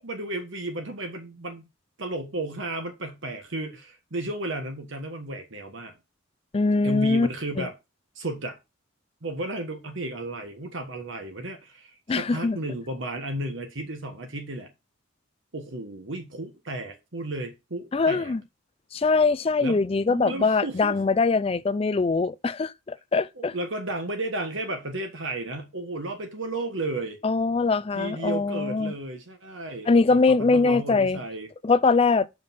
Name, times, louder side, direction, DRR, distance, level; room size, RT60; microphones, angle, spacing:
voice 1, 0.0-1.6 2.0-5.9 6.8-7.7 8.1-8.6 9.2-14.7 15.5-18.3 19.6-21.0 23.4-27.2 27.9-31.5, right 2 dB, 65° right, 1.4 m, -33 dB
voice 2, 6.5-7.3 7.6-7.7 12.1-12.6 17.9-18.4 18.9-23.5 27.2-28.9 29.9-31.2 31.6-32.3, left 4 dB, 25° left, 0.3 m, -22 dB
5.7 x 5.1 x 5.8 m
head